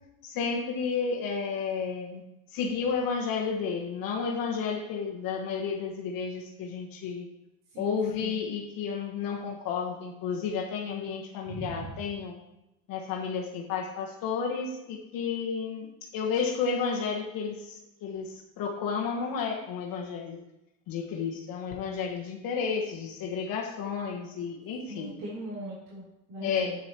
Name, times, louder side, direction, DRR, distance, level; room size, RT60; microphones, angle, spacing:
voice 1, 0.2-2.2 2.5-7.3 7.8-12.3 12.9-15.9 16.1-20.4 20.9-25.2 26.4-26.8, left 5 dB, 45° left, 0 dB, 1.3 m, -32 dB
voice 2, 7.7-8.4 11.5-11.9 24.9-26.7, right 1 dB, 55° right, -8 dB, 3.7 m, -40 dB
10.0 x 9.1 x 3.0 m, 0.91 s
supercardioid pair, 115°, 47 cm